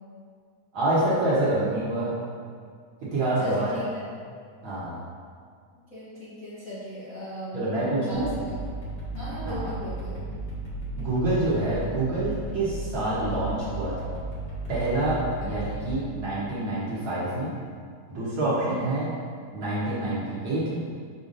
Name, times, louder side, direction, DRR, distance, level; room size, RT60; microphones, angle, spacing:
voice 1, 0.7-2.1 3.1-3.8 4.6-5.0 7.5-8.3 9.4-9.7 11.0-14.1 14.7-15.2 15.5-17.5 18.1-19.1 19.5-20.8, right 2 dB, 55° right, -9 dB, 1.6 m, -27 dB
voice 2, 3.4-4.0 5.9-8.6 9.1-10.2 15.4-15.5 18.6-18.9, left 1 dB, 70° left, -10 dB, 0.8 m, -38 dB
sound 1, 8.1-15.9, right 2 dB, 55° left, 2.5 m, -35 dB
6.8 x 6.1 x 2.6 m, 2.1 s
omnidirectional pair, 3.5 m